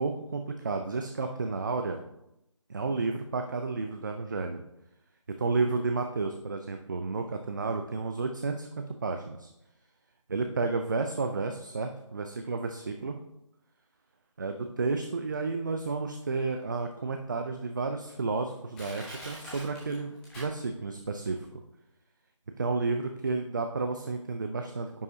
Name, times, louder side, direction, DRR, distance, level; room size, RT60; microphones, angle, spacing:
voice 1, 0.0-2.0 2.7-4.6 5.4-9.5 10.3-13.1 14.4-21.6 22.6-24.9, right 3 dB, 35° right, 5 dB, 0.4 m, -31 dB
Crushing, 18.7-20.9 21.3-21.4, equal, 5° left, 0.7 m, -44 dB
9.7 x 5.3 x 2.7 m, 0.86 s
figure-of-eight pair, 160°, 17 cm